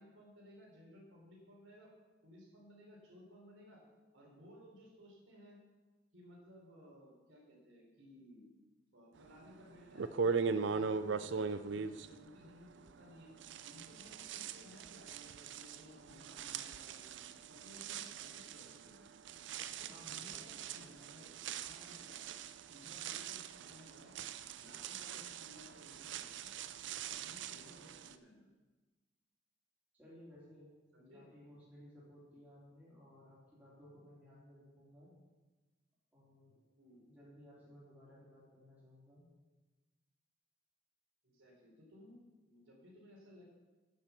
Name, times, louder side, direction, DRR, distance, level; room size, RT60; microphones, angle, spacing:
voice 1, 0.0-1.9 2.2-3.8 4.1-5.6 6.1-8.5 8.9-13.3 13.6-19.0 19.8-22.2 22.7-24.1 24.6-26.5 27.2-28.5 30.9-31.3 36.8-37.0 41.2-42.2 42.5-43.4, left 1 dB, 80° right, -2 dB, 3.8 m, -59 dB
sound 1, 9.4-9.5 9.9-13.1 13.4-28.1, right 5 dB, 65° right, 0.5 m, -41 dB
voice 2, 19.9-21.2 30.0-30.7 31.1-35.1 36.1-36.6 37.0-39.2, equal, 10° right, -8 dB, 3.1 m, -59 dB
9.5 x 7.5 x 7.0 m, 1.2 s
head